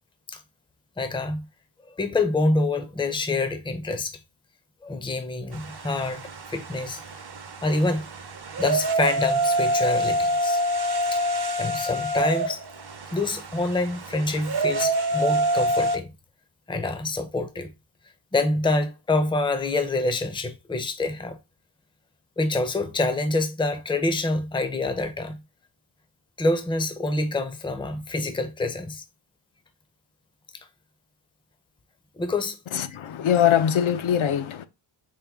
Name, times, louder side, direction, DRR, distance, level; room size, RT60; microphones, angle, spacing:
voice 1, 1.0-1.4 2.0-4.1 4.8-6.2 6.5-7.0 7.6-8.0 8.6-10.6 11.1-11.2 11.6-12.6 13.1-16.1 16.7-17.7 18.3-21.4 22.4-25.4 26.4-29.0 32.2-32.6, left 2 dB, 10° left, 0.5 m, -26 dB
sound 1, 5.5-16.0, right 1 dB, 55° right, 0.7 m, -26 dB
voice 2, 32.7-34.7, left 9 dB, 80° left, 0.6 m, -22 dB
4.6 x 2.2 x 3.4 m
wide cardioid pair, 90°, 48 cm